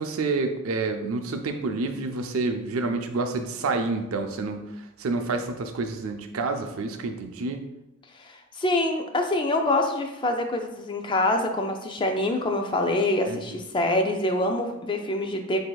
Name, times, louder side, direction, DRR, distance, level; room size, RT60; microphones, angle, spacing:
voice 1, 0.0-4.6 5.0-7.7 13.3-13.4, right 3 dB, 85° right, 5 dB, 0.5 m, -28 dB
voice 2, 8.2-15.6, left 1 dB, 25° left, 4 dB, 0.4 m, -25 dB
7.6 x 2.7 x 2.3 m, 0.95 s
head